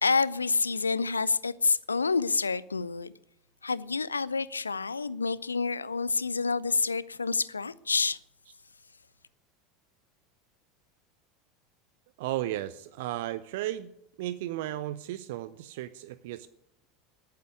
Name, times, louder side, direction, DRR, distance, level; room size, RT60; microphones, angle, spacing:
voice 1, 0.0-3.1 3.6-8.2, left 4 dB, 80° left, 0.4 m, -28 dB
voice 2, 12.2-13.9 14.2-16.5, right 14 dB, 55° right, 0.5 m, -34 dB
10.5 x 9.4 x 9.7 m
figure-of-eight pair, 75°, 0 cm